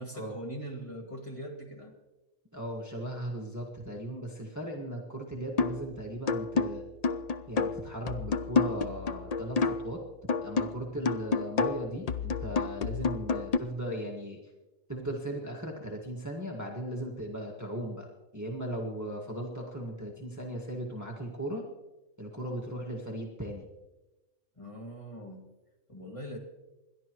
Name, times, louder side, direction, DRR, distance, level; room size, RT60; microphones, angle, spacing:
voice 1, 0.0-1.9 24.6-25.5 25.9-26.4, right 1 dB, 20° left, -1 dB, 2.3 m, -41 dB
voice 2, 2.5-6.8 7.5-10.0 10.4-14.4 14.9-18.1 18.3-21.6 22.2-23.7, right 1 dB, 10° right, 0 dB, 1.7 m, -37 dB
sound 1, 5.6-5.9 6.3-10.0 10.3-13.6, left 4 dB, 70° left, 0.3 m, -30 dB
28.5 x 12.0 x 3.1 m, 1.1 s
omnidirectional pair, 1.5 m